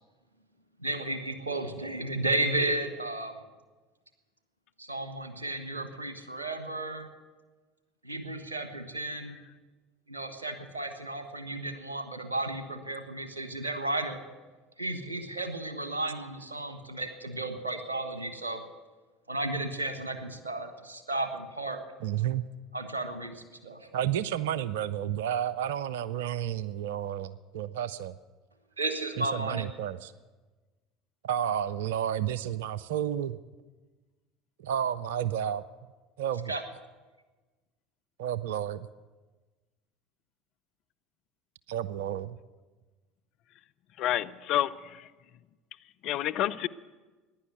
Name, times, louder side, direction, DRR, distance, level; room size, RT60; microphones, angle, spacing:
voice 1, 0.8-3.3 4.8-7.1 8.0-9.4 10.1-14.2 14.8-18.6 19.3-21.8 22.7-23.9 28.8-29.7 36.5-36.6, right 2 dB, 85° right, 7 dB, 1.3 m, -33 dB
voice 2, 22.0-22.4 23.9-28.2 29.2-30.1 31.2-33.4 34.6-35.6 36.2-36.5 38.2-38.9 41.7-42.4, right 10 dB, 70° right, 16 dB, 0.4 m, -31 dB
voice 3, 44.0-45.1 46.0-46.7, left 12 dB, 55° left, 12 dB, 0.6 m, -29 dB
15.5 x 10.5 x 8.2 m, 1.3 s
figure-of-eight pair, 65°, 0 cm